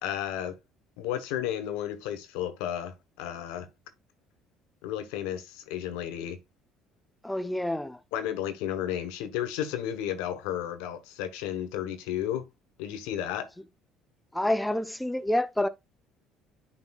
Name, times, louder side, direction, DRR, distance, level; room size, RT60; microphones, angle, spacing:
voice 1, 0.0-0.6 1.0-3.7 4.8-6.4 8.1-12.5 12.8-13.5, left 10 dB, 85° left, 0.9 m, -33 dB
voice 2, 7.2-8.0 14.3-15.7, left 1 dB, 5° left, 0.6 m, -28 dB
9.7 x 4.2 x 2.3 m
supercardioid pair, 80°, 0 cm